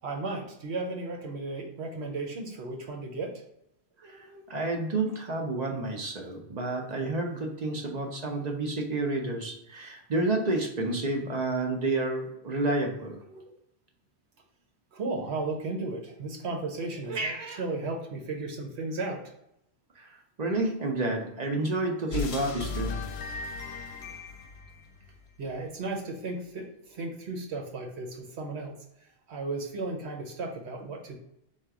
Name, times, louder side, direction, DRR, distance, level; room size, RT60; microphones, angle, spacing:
voice 1, 0.0-3.3 4.0-4.5 7.3-7.4 13.3-13.4 14.9-19.2 24.0-24.1 25.4-31.1, right 3 dB, 85° right, 1 dB, 1.1 m, -35 dB
voice 2, 4.0-13.2 20.0-23.0, right 2 dB, 45° right, 1 dB, 0.7 m, -30 dB
sound 1, 22.1-25.5, left 5 dB, 80° left, 0.8 m, -36 dB
3.8 x 2.4 x 4.6 m, 0.79 s
omnidirectional pair, 1.1 m